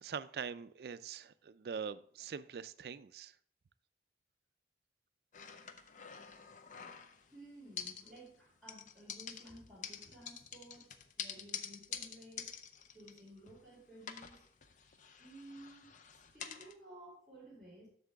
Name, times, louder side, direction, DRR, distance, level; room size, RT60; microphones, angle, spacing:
voice 1, 0.0-3.4, right 6 dB, 60° right, 0.3 m, -43 dB
sound 1, 5.3-7.4 7.8-8.4 8.7-13.7 14.0-16.7, left 7 dB, 45° left, 0.5 m, -47 dB
voice 2, 7.3-10.9 11.2-12.5 12.9-14.4 15.2-17.9, right 1 dB, ahead, 3.6 m, -55 dB
7.5 x 6.5 x 3.5 m
head